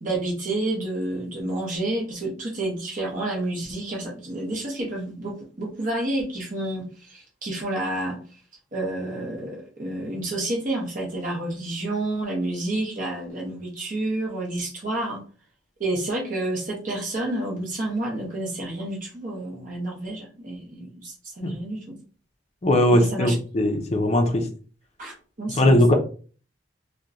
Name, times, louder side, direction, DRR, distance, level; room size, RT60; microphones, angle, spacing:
voice 1, 0.0-8.2 8.7-15.2 15.8-22.0 22.9-23.4 25.0-25.9, right 1 dB, 45° right, -2 dB, 0.7 m, -29 dB
voice 2, 22.6-24.5 25.5-25.9, left 1 dB, 35° left, 4 dB, 0.4 m, -19 dB
2.9 x 2.1 x 2.5 m, 0.39 s
head